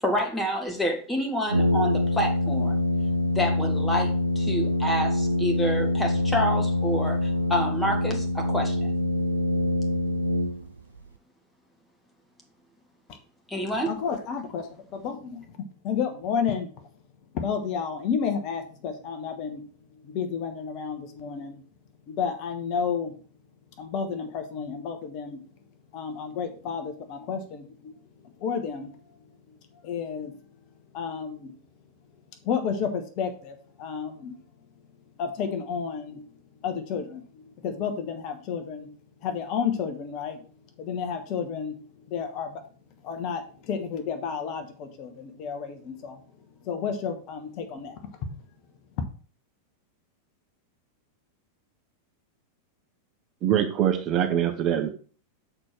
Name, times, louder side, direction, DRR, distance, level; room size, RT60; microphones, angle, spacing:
voice 1, 0.0-2.8 3.2-8.9 13.5-13.9, equal, 5° left, 2 dB, 1.9 m, -28 dB
Brass instrument, 1.5-11.0, left 1 dB, 80° right, 0.5 m, -25 dB
voice 2, 13.9-15.6 15.8-16.9 17.3-19.6 19.9-21.6 22.1-23.1 23.8-25.4 25.9-27.9 28.2-29.2 29.5-30.3 30.9-31.5 32.4-34.3 35.2-36.2 36.6-38.9 39.2-40.4 40.8-42.6 43.0-46.2 46.6-48.3 49.0-49.1, left 6 dB, 40° left, 6 dB, 1.2 m, -31 dB
voice 3, 53.4-54.9, right 10 dB, 35° right, 6 dB, 0.9 m, -24 dB
6.7 x 4.4 x 5.9 m, 0.41 s
figure-of-eight pair, 90°, 0 cm